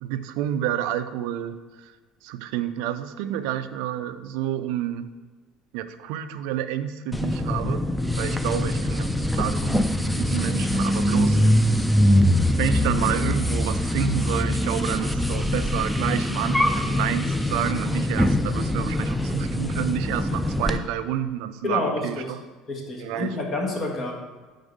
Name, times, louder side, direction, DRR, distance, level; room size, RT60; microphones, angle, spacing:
voice 1, 0.0-1.9 2.2-5.1 5.7-7.8 8.2-11.4 12.6-22.2 23.0-23.3, right 11 dB, 80° right, 12 dB, 0.3 m, -29 dB
sound 1, 7.1-20.8, left 1 dB, ahead, 0.4 m, -23 dB
voice 2, 21.6-22.2 22.7-24.1, left 2 dB, 35° left, 0 dB, 1.3 m, -28 dB
4.9 x 3.6 x 5.3 m, 1.3 s
supercardioid pair, 90°, 0 cm